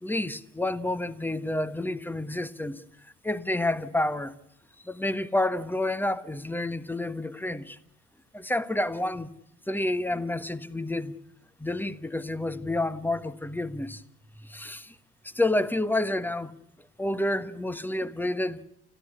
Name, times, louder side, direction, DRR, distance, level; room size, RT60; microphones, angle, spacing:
voice 1, 0.0-2.8 3.2-4.4 4.8-7.8 8.3-9.3 9.7-11.2 11.6-14.0 14.4-14.9 15.2-16.5 17.0-18.6, left 1 dB, 5° left, 1.3 m, -29 dB
30.0 x 13.5 x 9.8 m
figure-of-eight pair, 50°, 36 cm